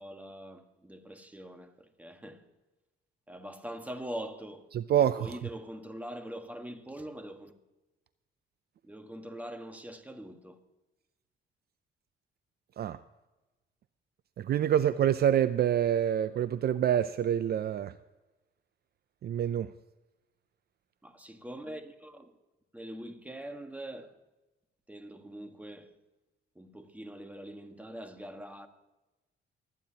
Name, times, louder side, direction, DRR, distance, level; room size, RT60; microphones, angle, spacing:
voice 1, 0.0-2.4 3.3-4.7 5.0-7.5 8.8-10.6 21.0-22.4 22.7-24.1 24.9-25.9 26.5-28.7, right 1 dB, 5° right, 1.4 m, -43 dB
voice 2, 4.7-5.3 12.8-13.0 14.4-17.9 19.2-19.7, right 10 dB, 55° right, 0.4 m, -26 dB
24.5 x 9.4 x 2.8 m
cardioid pair, 90°, 20 cm